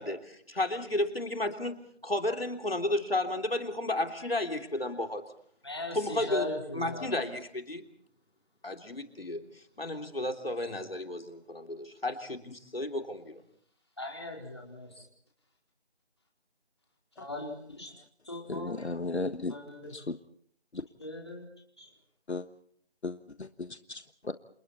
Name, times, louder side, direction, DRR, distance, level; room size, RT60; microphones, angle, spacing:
voice 1, 0.0-1.8 2.0-5.2 6.0-6.5 6.7-7.8 8.6-9.4 9.8-13.4, left 1 dB, 60° left, 5 dB, 3.4 m, -32 dB
voice 2, 4.2-4.6 5.6-7.2 10.6-10.7 14.0-15.0 17.2-17.9 18.2-18.8 19.5-20.0 21.0-21.4 21.8-21.9, left 2 dB, 25° left, 0 dB, 4.2 m, -39 dB
voice 3, 18.5-19.5 19.9-20.2 20.7-20.8 22.3-22.5 23.0-24.3, left 3 dB, 80° left, 11 dB, 1.4 m, -35 dB
29.0 x 27.0 x 4.3 m, 0.64 s
figure-of-eight pair, 175°, 33 cm